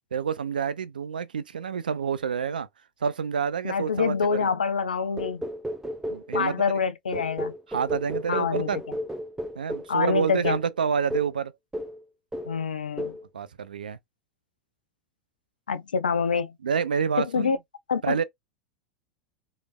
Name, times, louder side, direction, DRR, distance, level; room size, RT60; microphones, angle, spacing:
voice 1, 0.1-2.7 3.0-4.5 6.1-6.6 7.7-8.8 9.6-11.5 13.3-14.0 16.6-17.5 18.0-18.2, right 6 dB, 80° right, 0.4 m, -28 dB
voice 2, 3.6-5.4 6.3-7.5 8.3-8.7 9.9-10.6 12.5-13.2 15.7-16.6 17.2-17.6 17.9-18.2, left 6 dB, 80° left, 0.5 m, -26 dB
sound 1, 5.2-6.6 7.1-10.0 10.4-10.7 11.1-11.4 11.7-12.0 12.3-12.6 13.0-13.2, equal, 10° right, 0.9 m, -33 dB
3.3 x 3.0 x 2.3 m
figure-of-eight pair, 85°, 5 cm